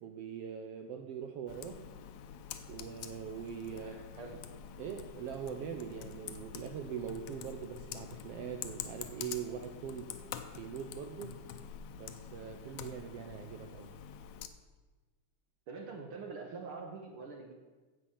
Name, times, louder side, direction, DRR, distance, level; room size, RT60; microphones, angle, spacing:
voice 1, 0.0-1.9 2.7-3.9 4.8-10.2 10.5-11.4 11.9-13.9, right 8 dB, 85° right, 5 dB, 1.4 m, -42 dB
Computer keyboard, 1.5-14.5, left 8 dB, 75° left, 2.0 m, -46 dB
voice 2, 3.7-4.5 15.7-17.5, right 4 dB, 60° right, 3 dB, 1.5 m, -45 dB
9.9 x 8.1 x 7.3 m, 1.3 s
omnidirectional pair, 3.5 m